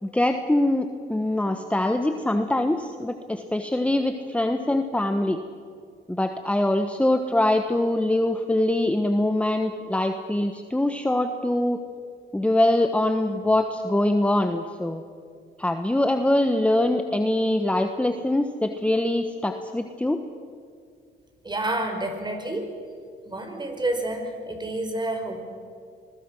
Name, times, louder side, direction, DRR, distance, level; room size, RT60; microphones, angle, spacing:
voice 1, 0.0-5.4 6.1-11.8 12.3-15.0 15.6-20.2, left 1 dB, 5° left, 6 dB, 1.2 m, -23 dB
voice 2, 21.4-22.7 23.2-25.4, right 1 dB, 20° right, 5 dB, 4.9 m, -29 dB
26.5 x 21.5 x 6.3 m, 2.2 s
cardioid pair, 90°, 20 cm